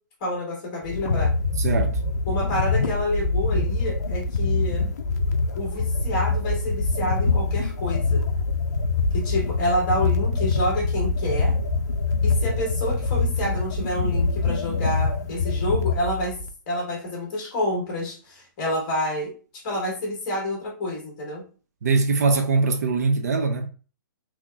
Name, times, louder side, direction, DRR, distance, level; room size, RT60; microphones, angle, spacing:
voice 1, 0.2-1.3 2.3-4.9 5.6-8.2 9.1-11.5 12.2-16.4 16.7-21.4, left 1 dB, 20° left, 1.2 m, -28 dB
sound 1, 0.8-16.5, left 3 dB, 55° left, 0.5 m, -24 dB
voice 2, 1.6-2.0 21.8-23.7, right 4 dB, 50° right, 0.4 m, -22 dB
3.8 x 2.9 x 2.3 m
hypercardioid pair, 180°, 11 cm